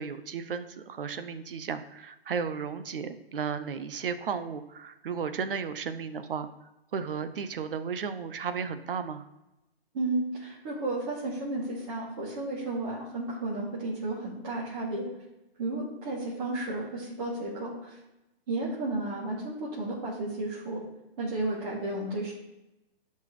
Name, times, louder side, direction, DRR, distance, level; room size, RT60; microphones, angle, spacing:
voice 1, 0.0-6.5 6.9-9.2, right 6 dB, 60° right, 11 dB, 0.9 m, -34 dB
voice 2, 9.9-15.1 15.6-18.0 18.5-20.8 21.2-22.3, right 2 dB, 35° right, -9 dB, 3.0 m, -33 dB
11.5 x 5.4 x 3.4 m, 0.97 s
hypercardioid pair, 155°, 32 cm